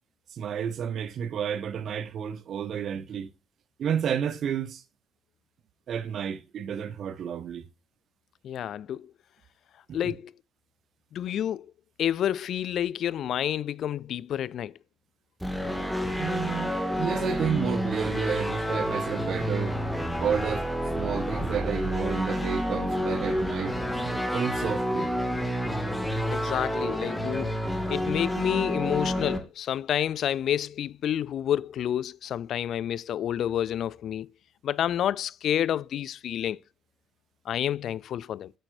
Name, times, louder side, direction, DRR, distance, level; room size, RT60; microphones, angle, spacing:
voice 1, 0.3-3.3 3.8-4.8 5.9-7.7 9.9-10.1 16.2-19.8 20.2-20.7 20.9-23.8 24.3-25.1, right 8 dB, 50° right, 0.9 m, -31 dB
voice 2, 8.4-9.1 9.9-10.3 11.1-11.7 12.0-14.7 26.3-27.6 27.9-34.3 34.6-36.6 37.5-38.5, left 10 dB, 55° left, 0.3 m, -29 dB
sound 1, 15.4-29.4, equal, ahead, 2.1 m, -29 dB
8.9 x 7.8 x 2.6 m
figure-of-eight pair, 50°, 0 cm